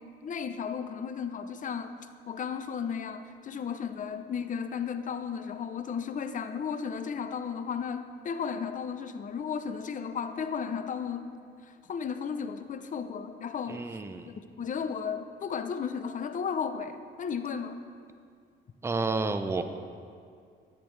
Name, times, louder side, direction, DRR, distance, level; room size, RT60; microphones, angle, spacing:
voice 1, 0.2-1.9 2.3-11.3 11.6-13.8 14.2-17.8, left 6 dB, 40° left, 9 dB, 0.5 m, -34 dB
voice 2, 13.7-14.3 18.8-19.6, right 3 dB, 15° right, 8 dB, 0.5 m, -30 dB
10.5 x 8.1 x 3.2 m, 2.3 s
cardioid pair, 90°, 20 cm